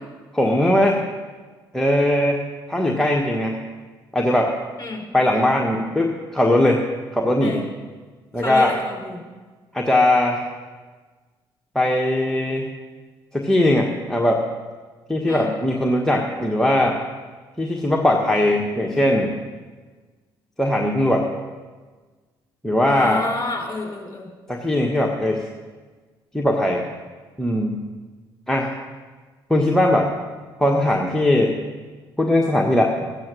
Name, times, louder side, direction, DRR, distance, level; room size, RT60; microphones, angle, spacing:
voice 1, 0.3-1.0 1.7-2.4 2.7-3.6 4.1-4.6 5.1-6.8 7.1-7.6 8.3-8.7 9.7-10.4 11.7-12.7 13.3-14.5 15.1-17.0 17.6-19.3 20.6-21.3 22.6-23.2 24.5-25.4 26.3-26.9 27.4-27.8 28.5-28.7 29.5-30.1 30.6-31.6 32.2-32.9, left 1 dB, 5° left, -1 dB, 1.4 m, -19 dB
voice 2, 8.4-9.2 15.3-15.5 22.9-24.3, left 2 dB, 25° left, 0 dB, 4.3 m, -28 dB
13.5 x 9.4 x 6.4 m, 1.4 s
hypercardioid pair, 50°, 12 cm